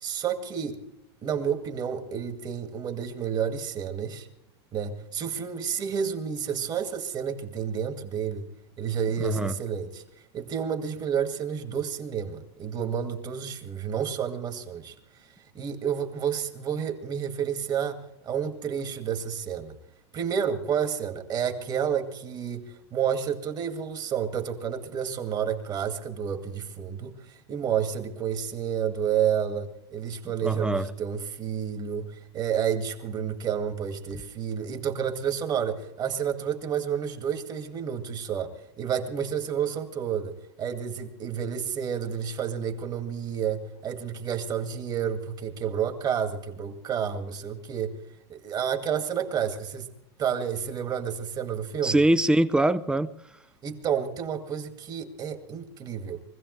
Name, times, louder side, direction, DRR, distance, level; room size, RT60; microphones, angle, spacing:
voice 1, 0.0-0.8 1.2-4.3 4.7-8.5 8.8-10.0 10.3-14.9 15.5-19.7 20.1-48.0 48.3-49.9 50.2-52.0 53.6-56.2, right 8 dB, 30° right, 2.1 m, -30 dB
voice 2, 9.2-9.5 30.4-30.9 51.8-53.1, right 1 dB, 5° right, 0.6 m, -23 dB
24.0 x 16.0 x 3.2 m
supercardioid pair, 145°, 14 cm